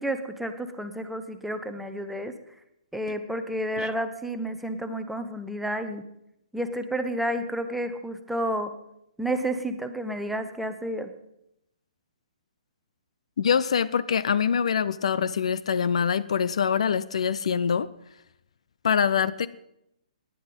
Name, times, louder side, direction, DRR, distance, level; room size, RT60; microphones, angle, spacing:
voice 1, 0.0-2.3 2.9-6.0 6.5-8.7 9.2-11.1, right 1 dB, ahead, 7 dB, 0.9 m, -30 dB
voice 2, 13.4-17.9 18.8-19.5, left 7 dB, 55° left, 16 dB, 0.5 m, -24 dB
18.0 x 10.0 x 5.4 m, 0.82 s
figure-of-eight pair, 125°, 4 cm